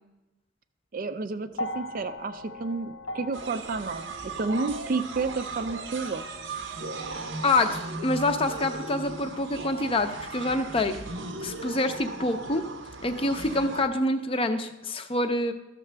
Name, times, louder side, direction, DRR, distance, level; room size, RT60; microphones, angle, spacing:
voice 1, 0.9-6.2, right 3 dB, 45° right, 10 dB, 0.4 m, -31 dB
sound 1, 1.5-9.9 10.9-11.0, left 1 dB, 85° left, 0.6 m, -42 dB
sound 2, 3.3-13.8, right 3 dB, 70° right, 0.8 m, -37 dB
voice 2, 7.4-11.0 11.4-12.7 13.0-15.5, left 2 dB, 30° left, 8 dB, 0.5 m, -26 dB
12.5 x 6.7 x 3.3 m, 0.99 s
head